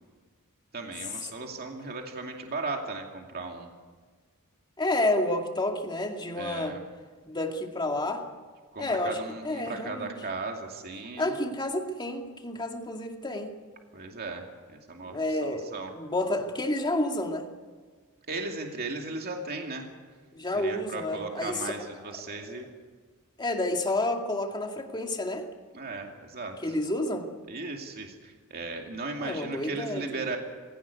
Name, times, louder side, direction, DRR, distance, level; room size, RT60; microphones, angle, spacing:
voice 1, 0.7-3.7 6.4-6.8 8.7-11.4 13.9-15.9 18.3-19.9 20.5-22.7 25.7-26.7 27.5-30.4, right 3 dB, 45° right, 2 dB, 2.5 m, -36 dB
voice 2, 4.8-6.8 7.3-8.2 8.8-9.2 9.4-10.2 11.2-13.5 15.1-17.4 20.3-21.8 22.2-22.6 23.4-25.4 26.6-27.3 29.2-30.3, left 1 dB, 20° left, 3 dB, 2.3 m, -30 dB
21.0 x 17.5 x 9.6 m, 1.5 s
head